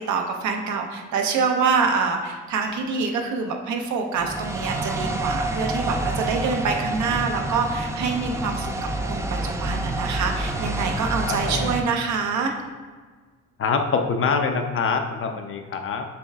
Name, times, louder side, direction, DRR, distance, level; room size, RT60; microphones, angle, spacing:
voice 1, 0.0-8.7 9.0-12.5, right 5 dB, 70° right, 3 dB, 0.7 m, -25 dB
sound 1, 4.2-11.8, right 2 dB, 10° right, 0.3 m, -28 dB
voice 2, 11.3-11.6 13.6-16.0, left 5 dB, 45° left, 5 dB, 0.5 m, -24 dB
6.9 x 3.1 x 2.3 m, 1.4 s
cardioid pair, 90°, 30 cm